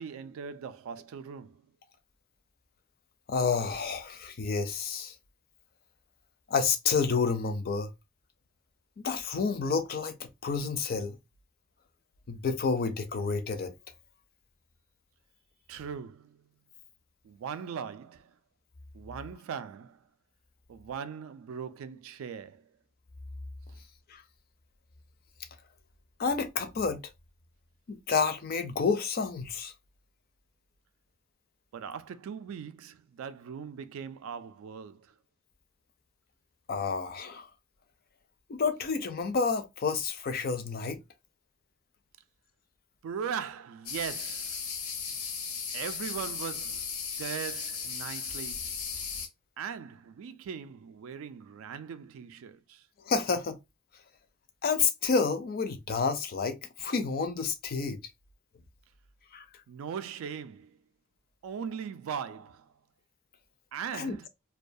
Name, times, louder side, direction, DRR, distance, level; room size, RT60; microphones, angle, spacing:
voice 1, 0.0-1.7 15.7-16.4 17.2-18.3 18.9-20.0 20.7-22.6 31.7-35.1 43.0-44.6 45.7-46.9 47.2-48.7 49.6-52.8 59.7-60.8 61.4-62.7 63.7-64.3, right 7 dB, 65° right, 0.3 m, -39 dB
voice 2, 3.3-5.2 6.5-7.9 9.0-11.2 12.3-13.7 24.1-24.2 26.2-27.0 27.9-29.7 36.7-37.5 38.5-41.0 53.0-53.6 54.6-58.0 59.3-59.4 63.9-64.3, left 5 dB, 45° left, 0.4 m, -29 dB
sound 1, 43.9-49.3, left 6 dB, 85° left, 0.7 m, -36 dB
2.3 x 2.2 x 2.5 m
head